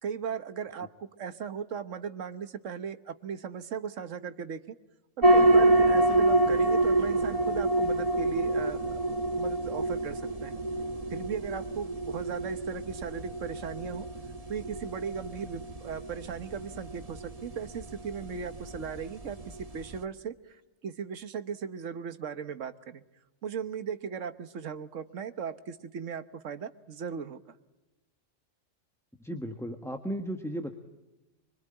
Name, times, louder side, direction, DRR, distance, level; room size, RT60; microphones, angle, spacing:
voice 1, 0.0-4.7 5.2-9.0 9.4-10.6 11.1-14.1 14.5-23.0 23.4-27.5, right 7 dB, 80° right, 11 dB, 1.5 m, -37 dB
sound 1, 5.2-20.0, right 1 dB, 30° right, 1.7 m, -27 dB
voice 2, 29.2-30.7, equal, ahead, 4 dB, 1.4 m, -35 dB
25.0 x 24.5 x 8.9 m, 1.0 s
omnidirectional pair, 1.3 m